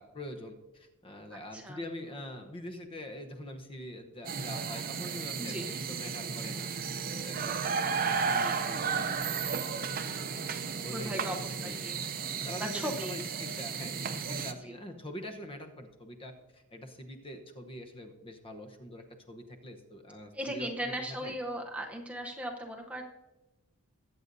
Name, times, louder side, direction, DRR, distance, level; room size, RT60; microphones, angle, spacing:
voice 1, 0.0-6.7 7.1-11.4 11.6-11.8 12.4-21.3, left 1 dB, 25° left, 6 dB, 0.9 m, -45 dB
voice 2, 1.3-1.8 5.4-5.7 7.4-8.0 8.4-8.6 10.9-12.0 12.4-13.2 14.7-14.8 20.3-23.0, right 1 dB, 5° right, 2 dB, 0.8 m, -38 dB
sound 1, 4.3-14.5, right 5 dB, 40° right, 0.6 m, -34 dB
21.5 x 8.0 x 2.7 m, 1.0 s
head